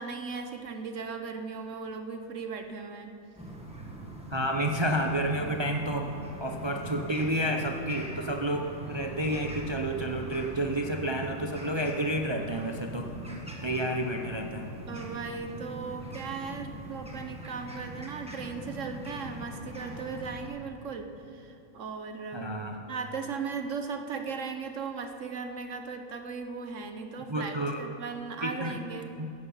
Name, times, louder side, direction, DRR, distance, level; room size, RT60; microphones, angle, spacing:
voice 1, 0.0-3.1 14.9-22.5 22.9-29.1, right 5 dB, 60° right, 6 dB, 1.1 m, -37 dB
sound 1, 3.4-20.5, right 1 dB, 5° right, 1.5 m, -42 dB
voice 2, 4.3-6.1 6.4-13.1 13.6-14.7 22.3-22.8 27.3-27.9 28.4-28.8 29.2-29.3, right 1 dB, 40° right, 3 dB, 0.4 m, -30 dB
14.5 x 11.0 x 5.6 m, 2.6 s
omnidirectional pair, 1.6 m